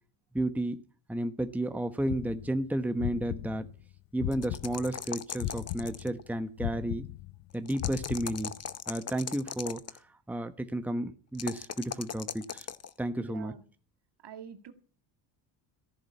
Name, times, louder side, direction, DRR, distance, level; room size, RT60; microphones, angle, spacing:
voice 1, 0.3-0.8 1.1-3.7 4.1-7.1 7.5-8.5 8.9-10.0 10.3-12.7 13.0-13.5, right 1 dB, 5° right, 9 dB, 1.2 m, -32 dB
sound 1, 2.1-5.0 5.4-8.7, left 17 dB, 85° left, 0.7 m, -37 dB
sound 2, 4.3-6.2 7.7-10.0 11.4-12.9, left 7 dB, 30° left, 0.9 m, -39 dB
voice 2, 13.2-13.6 14.2-14.7, right 8 dB, 55° right, 9 dB, 2.0 m, -46 dB
14.5 x 6.5 x 9.5 m, 0.42 s
cardioid pair, 90°, 50 cm